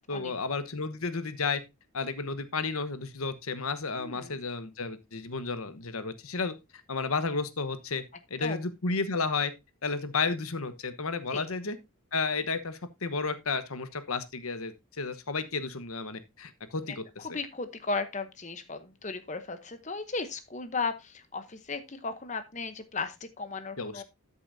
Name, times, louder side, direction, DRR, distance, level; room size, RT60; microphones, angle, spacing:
voice 1, 0.1-1.6 1.9-6.5 6.9-8.0 8.3-9.5 9.8-11.8 12.1-17.3 23.8-24.0, left 4 dB, 85° left, 1.2 m, -32 dB
voice 2, 4.0-4.3 8.4-8.6 11.3-11.5 17.2-24.0, left 4 dB, 35° left, 0.9 m, -35 dB
13.0 x 7.0 x 2.7 m
head